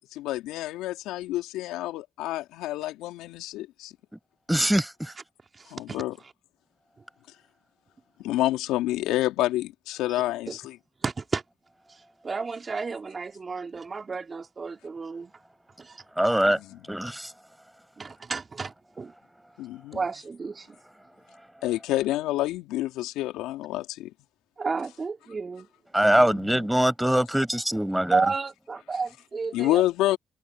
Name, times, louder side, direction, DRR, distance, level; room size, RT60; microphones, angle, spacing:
voice 1, 0.1-3.9 5.7-6.2 8.2-10.8 16.6-16.8 19.6-20.0 21.6-24.1 26.1-26.6 29.5-30.2, left 15 dB, 85° left, 3.2 m, -28 dB
voice 2, 4.5-5.1 16.2-16.6 16.9-17.3 25.9-28.2, right 1 dB, 5° right, 7.3 m, -23 dB
voice 3, 5.6-6.0 10.5-10.6 11.0-11.4 12.2-15.3 15.8-16.0 18.0-19.1 19.9-20.8 24.6-25.7 28.1-29.8, right 4 dB, 45° right, 2.3 m, -31 dB
hypercardioid pair, 40°, 0 cm